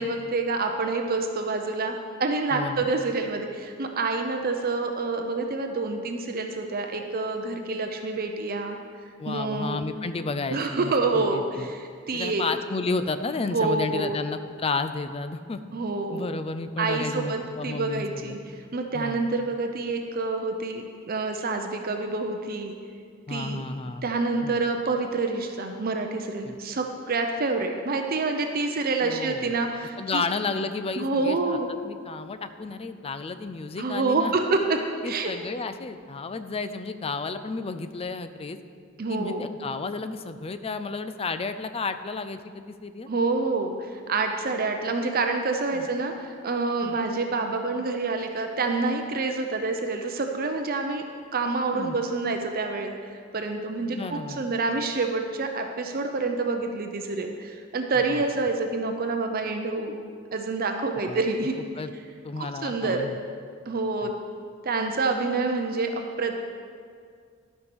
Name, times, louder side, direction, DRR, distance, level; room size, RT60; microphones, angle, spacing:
voice 1, 0.0-8.8 9.3-9.8 10.5-12.4 13.5-14.2 15.7-16.2 16.8-18.4 18.7-22.8 23.3-23.6 24.0-30.2 31.0-31.7 33.8-35.3 39.0-39.4 43.1-51.0 51.3-53.0 53.3-60.0 60.3-61.5 62.6-63.1 63.7-64.1 64.6-66.3, right 3 dB, 45° right, 4 dB, 0.6 m, -27 dB
voice 2, 2.5-2.9 9.2-11.7 12.1-15.6 16.1-18.4 18.9-19.2 23.3-24.1 24.4-24.6 26.4-26.6 29.0-29.5 30.0-31.6 31.8-34.3 35.0-38.6 39.1-43.1 45.7-45.9 46.8-47.0 51.7-52.0 53.8-54.4 58.1-58.2 61.0-61.2 61.8-61.9 62.2-63.2 64.0-64.1, left 3 dB, 30° left, 10 dB, 0.4 m, -32 dB
12.5 x 5.4 x 6.1 m, 2.2 s
head